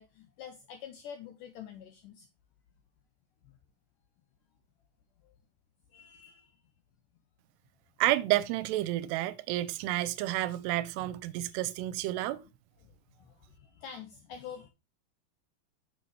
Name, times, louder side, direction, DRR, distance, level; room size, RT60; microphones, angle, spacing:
voice 1, 0.0-2.3 3.4-3.5 5.2-5.3 5.9-6.6 12.8-14.7, left 8 dB, 80° left, 1.9 m, -47 dB
voice 2, 8.0-12.4, right 15 dB, 85° right, 2.8 m, -30 dB
9.0 x 7.3 x 3.2 m
omnidirectional pair, 4.8 m